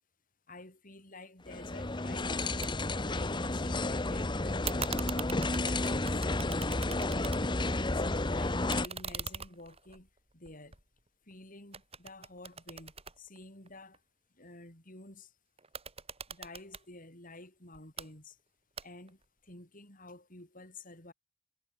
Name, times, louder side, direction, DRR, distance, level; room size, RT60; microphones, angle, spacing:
voice 1, 0.5-4.9 5.4-6.7 7.9-10.1 10.3-10.8 11.3-14.0 14.4-15.3 16.3-18.4 18.8-21.1, left 2 dB, 45° left, 8.0 m, -51 dB
sound 1, 1.5-8.9, left 2 dB, 25° left, 1.1 m, -31 dB
sound 2, 2.6-2.7 3.0-3.8 4.6-7.7 8.1-11.3 11.7-14.0 15.6-16.9 17.7-18.1 18.8-19.2, right 6 dB, 30° right, 7.3 m, -42 dB
head